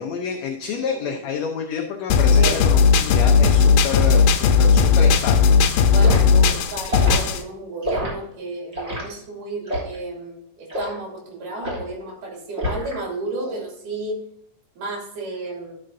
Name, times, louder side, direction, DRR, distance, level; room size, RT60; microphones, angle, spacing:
voice 1, 0.0-5.5, left 5 dB, 70° left, 3 dB, 1.8 m, -29 dB
voice 2, 0.7-1.2 2.4-2.6 5.9-14.2 14.8-15.7, right 2 dB, 75° right, -1 dB, 4.1 m, -32 dB
sound 1, 2.1-7.4, left 5 dB, 90° left, 2.4 m, -16 dB
Liquid, 6.0-6.2 6.9-7.2 7.8-8.1 8.7-9.0 9.7-10.0 10.7-10.9 11.6-11.9 12.6-13.0 13.3-13.6, equal, 20° right, 3.1 m, -27 dB
12.0 x 6.8 x 2.6 m, 0.74 s
omnidirectional pair, 3.8 m